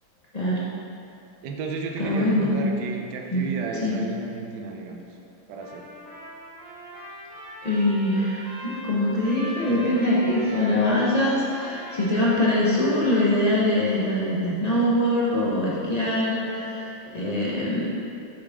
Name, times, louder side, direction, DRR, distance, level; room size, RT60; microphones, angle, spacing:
voice 1, 1.4-5.0 5.5-5.8, right 3 dB, 65° right, 2 dB, 1.1 m, -33 dB
voice 2, 2.0-2.5 3.3-3.4 3.8-3.9 7.6-17.9, left 1 dB, 50° left, -7 dB, 0.4 m, -23 dB
Trumpet, 5.5-13.6, equal, 40° right, 1.8 m, -41 dB
7.6 x 6.4 x 3.6 m, 2.7 s
omnidirectional pair, 2.4 m